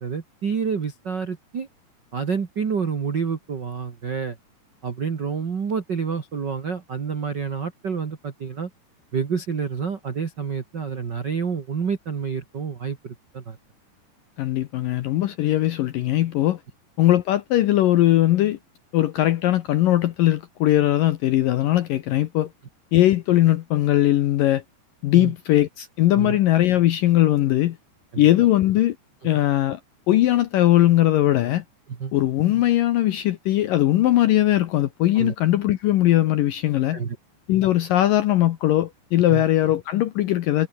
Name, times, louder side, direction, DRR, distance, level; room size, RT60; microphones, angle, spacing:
voice 1, 0.0-1.7 2.1-4.4 4.8-8.7 9.1-13.6 25.1-25.3 26.2-26.4 28.1-28.2 31.9-32.1 35.1-35.3 36.9-37.2 39.3-39.4, right 6 dB, 80° right, 0.9 m, -28 dB
voice 2, 14.4-16.6 17.0-18.6 18.9-22.5 22.9-24.6 25.0-27.8 28.2-29.0 29.2-29.8 30.1-31.6 32.1-37.0 37.5-40.7, left 14 dB, 75° left, 2.1 m, -20 dB
omnidirectional pair, 5.1 m